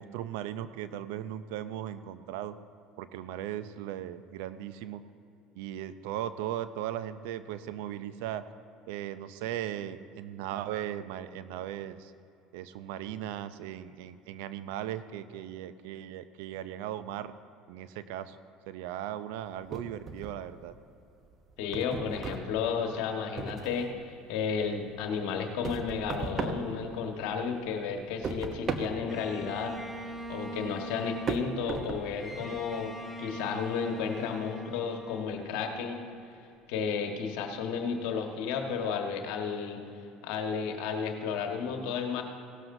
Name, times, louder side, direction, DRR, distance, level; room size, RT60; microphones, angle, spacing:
voice 1, 0.0-2.6 3.0-5.0 5.6-8.4 8.9-12.1 12.5-17.3 17.7-18.4 18.7-20.8, right 11 dB, 70° right, 13 dB, 0.5 m, -37 dB
sound 1, 19.7-20.8 21.1-24.0 24.4-27.4 27.7-32.6, right 4 dB, 40° right, 1.0 m, -37 dB
voice 2, 21.6-29.7 30.0-32.9 33.2-36.0 36.7-39.8 40.2-42.2, left 6 dB, 70° left, 3 dB, 1.4 m, -33 dB
Bowed string instrument, 29.1-36.3, right 1 dB, ahead, 1.1 m, -43 dB
17.0 x 12.5 x 2.7 m, 2.7 s
hypercardioid pair, 75°, 0 cm